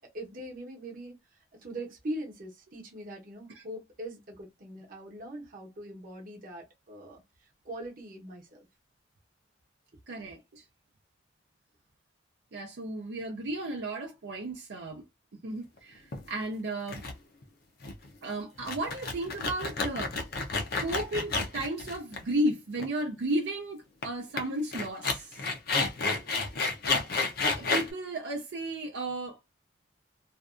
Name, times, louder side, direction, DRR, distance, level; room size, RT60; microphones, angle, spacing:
voice 1, 0.1-1.1 1.5-7.2 7.6-8.7, right 1 dB, 50° right, 0.9 m, -41 dB
voice 2, 10.1-10.6 12.5-15.0 15.4-17.0 18.2-20.2 20.8-25.4 26.9-27.1 27.6-29.4, right 1 dB, 80° right, 0.5 m, -34 dB
sound 1, 16.1-16.4 16.9-17.1 17.4-17.5 17.8-18.1 18.6-22.5 22.8-22.9 24.0-24.1 24.4-24.5 24.7-27.9, left 3 dB, 55° left, 0.6 m, -30 dB
2.6 x 2.3 x 2.4 m
head